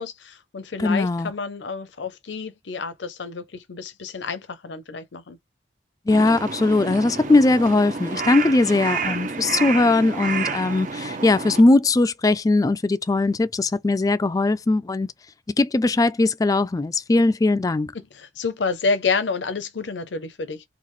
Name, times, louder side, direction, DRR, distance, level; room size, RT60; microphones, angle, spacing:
voice 1, 0.0-5.4 18.1-20.6, left 4 dB, 85° left, 0.6 m, -29 dB
voice 2, 0.8-1.3 6.1-15.1 15.5-17.9, left 2 dB, 20° left, 0.3 m, -20 dB
Crow, 6.1-11.6, right 4 dB, 45° right, 0.6 m, -30 dB
3.7 x 2.3 x 3.1 m
head